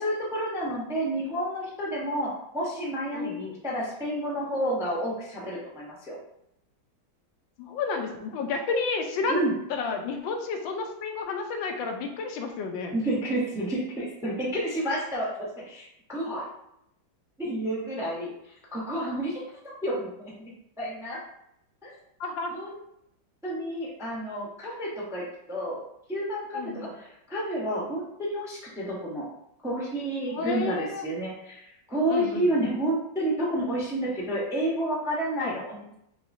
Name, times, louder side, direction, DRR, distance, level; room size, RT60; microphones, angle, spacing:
voice 1, 0.0-6.2 9.3-9.6 12.9-16.5 17.4-19.4 19.8-20.5 20.8-21.2 21.8-21.9 22.5-22.8 23.4-25.8 26.1-29.3 29.6-35.9, right 1 dB, 5° right, -5 dB, 0.5 m, -30 dB
voice 2, 3.1-3.5 7.6-9.4 9.7-12.9 22.2-22.5 26.5-26.9 30.3-31.0 32.1-32.7 35.4-35.5, left 4 dB, 80° left, 4 dB, 1.4 m, -31 dB
5.7 x 2.9 x 2.7 m, 0.79 s
omnidirectional pair, 2.1 m